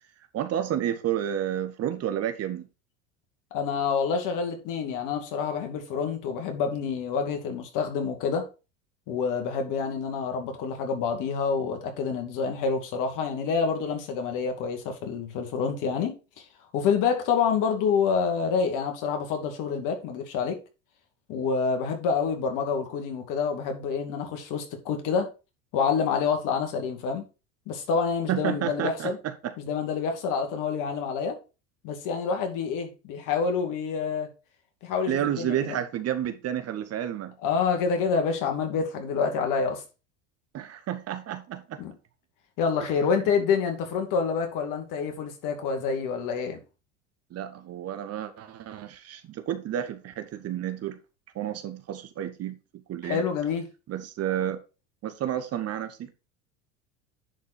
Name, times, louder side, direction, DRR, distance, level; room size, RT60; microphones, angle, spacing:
voice 1, 0.3-2.7 28.3-29.5 35.1-37.3 40.5-41.8 47.3-51.0 51.3-52.5 52.9-53.2 53.9-54.6 55.0-56.1, right 11 dB, 40° right, 1.2 m, -30 dB
voice 2, 3.5-8.4 9.1-16.4 16.7-20.6 21.3-25.3 25.7-27.2 27.7-29.2 29.6-31.4 31.8-34.3 34.8-35.8 37.4-39.8 41.8-41.9 42.6-46.6 53.0-53.7, left 5 dB, 55° left, 2.4 m, -27 dB
10.5 x 4.5 x 4.3 m
hypercardioid pair, 85°, 36 cm